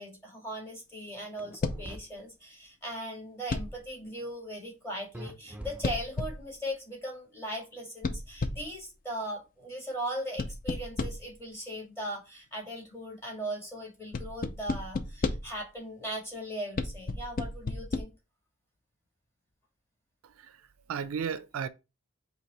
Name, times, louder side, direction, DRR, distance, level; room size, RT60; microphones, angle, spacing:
voice 1, 0.0-18.1, equal, 10° left, 1.8 m, -39 dB
sound 1, 1.4-2.0 5.1-6.3, right 1 dB, 5° right, 0.5 m, -44 dB
sound 2, 1.6-2.0 3.5-3.9 5.8-6.5 8.0-8.8 10.4-11.4 14.1-15.6 16.8-18.0, left 3 dB, 40° left, 0.5 m, -33 dB
voice 2, 20.2-21.7, right 7 dB, 65° right, 0.4 m, -35 dB
4.7 x 2.8 x 4.0 m
head